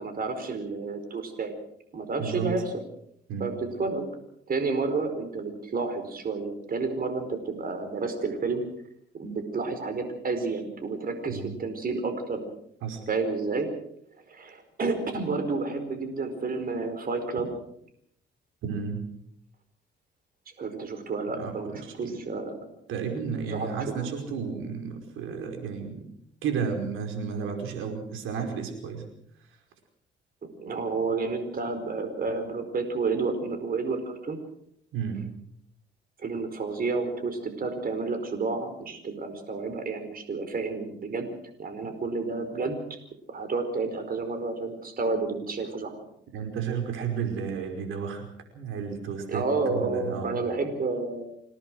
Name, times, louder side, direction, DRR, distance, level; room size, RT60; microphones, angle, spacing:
voice 1, 0.0-1.5 1.9-2.6 3.4-3.5 3.8-4.1 4.5-8.6 9.2-12.4 13.1-13.7 14.3-17.5 20.6-22.5 23.5-23.7 30.6-34.4 36.2-41.3 41.6-42.8 43.3-45.9 49.3-51.2, right 4 dB, 45° right, 8 dB, 4.7 m, -30 dB
voice 2, 2.2-2.5 3.3-3.5 11.3-11.6 12.8-13.0 18.6-19.0 21.2-22.3 22.9-26.0 26.4-29.0 34.9-35.3 46.3-48.3 48.5-50.4, right 6 dB, 90° right, 5 dB, 5.1 m, -32 dB
27.0 x 17.5 x 6.3 m, 0.70 s
cardioid pair, 90°, 20 cm